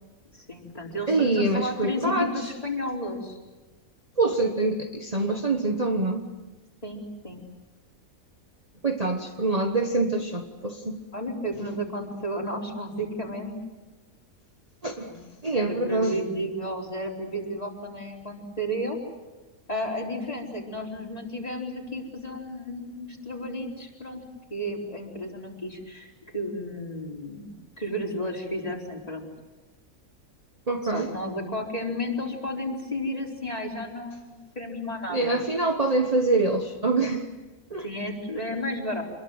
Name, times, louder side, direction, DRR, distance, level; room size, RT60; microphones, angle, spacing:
voice 1, 0.5-3.4 6.8-7.4 11.1-13.6 15.1-15.2 15.5-19.0 19.7-24.2 24.5-29.3 30.8-35.3 37.8-39.0, left 1 dB, 25° left, -1 dB, 4.4 m, -32 dB
voice 2, 1.1-2.5 4.2-6.3 8.8-11.0 14.8-15.1 15.4-16.2 30.7-31.1 35.1-37.3 37.7-37.9, right 3 dB, 30° right, 3 dB, 1.3 m, -25 dB
27.0 x 22.0 x 8.0 m, 1.2 s
omnidirectional pair, 1.5 m